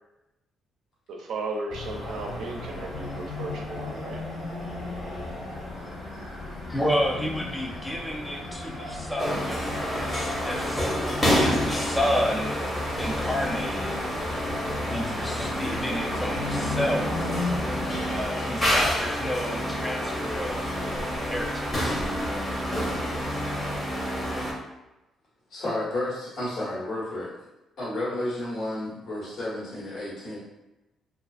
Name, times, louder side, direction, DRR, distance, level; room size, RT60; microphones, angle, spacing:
voice 1, 1.1-4.2, right 3 dB, 75° right, 1 dB, 0.4 m, -35 dB
sound 1, 1.7-18.3, left 2 dB, 50° left, 1.5 m, -36 dB
voice 2, 6.7-12.6 12.9-14.0 14.9-17.3 18.1-22.0, equal, 5° left, -2 dB, 0.4 m, -31 dB
sound 2, 9.2-24.5, equal, 20° left, 0.8 m, -28 dB
voice 3, 25.5-27.3 27.8-30.4, left 1 dB, 65° left, -7 dB, 1.2 m, -31 dB
2.3 x 2.3 x 2.4 m, 0.99 s
cardioid pair, 90°, 0 cm